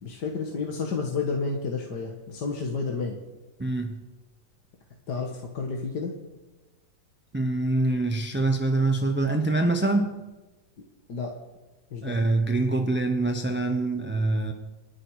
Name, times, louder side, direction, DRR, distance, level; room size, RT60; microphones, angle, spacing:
voice 1, 0.0-3.2 5.1-6.1 11.1-11.3 11.9-12.2, left 4 dB, 60° left, 1 dB, 2.2 m, -30 dB
voice 2, 3.6-4.0 7.3-10.2 12.0-14.5, right 2 dB, 10° right, 5 dB, 0.6 m, -25 dB
29.5 x 10.0 x 4.8 m, 1.2 s
omnidirectional pair, 2.0 m